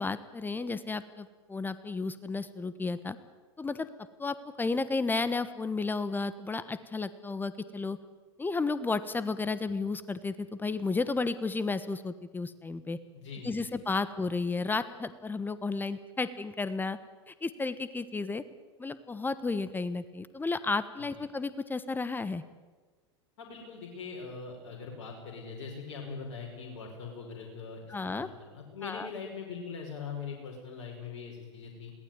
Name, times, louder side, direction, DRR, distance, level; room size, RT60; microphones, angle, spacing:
voice 1, 0.0-3.2 3.6-3.9 4.2-8.0 8.4-13.0 13.4-17.0 17.3-18.4 18.8-22.4 27.9-28.3 28.8-29.1, left 3 dB, 10° left, 14 dB, 1.2 m, -33 dB
voice 2, 13.1-13.8 23.4-31.9, left 5 dB, 60° left, 0 dB, 5.6 m, -42 dB
22.0 x 18.0 x 9.6 m, 1.3 s
figure-of-eight pair, 90°, 15 cm